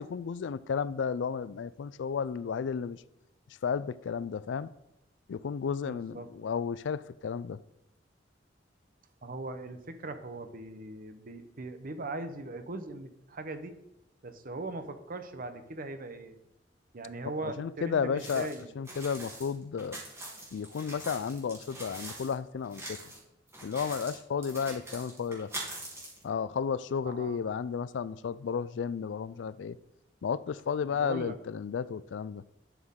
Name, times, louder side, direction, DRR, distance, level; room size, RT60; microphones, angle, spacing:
voice 1, 0.0-3.0 3.6-4.7 5.3-7.6 17.4-18.5 18.8-20.0 20.5-23.0 23.6-25.5 26.2-29.8 30.2-32.4, left 6 dB, 75° left, 0.3 m, -33 dB
voice 2, 5.8-6.3 9.2-13.7 14.2-16.4 16.9-18.7 27.0-27.4 30.9-31.4, right 2 dB, 50° right, 0.8 m, -40 dB
sound 1, 18.2-22.3 22.6-23.2 23.5-26.2, right 1 dB, 15° right, 2.8 m, -43 dB
11.0 x 6.2 x 3.7 m
head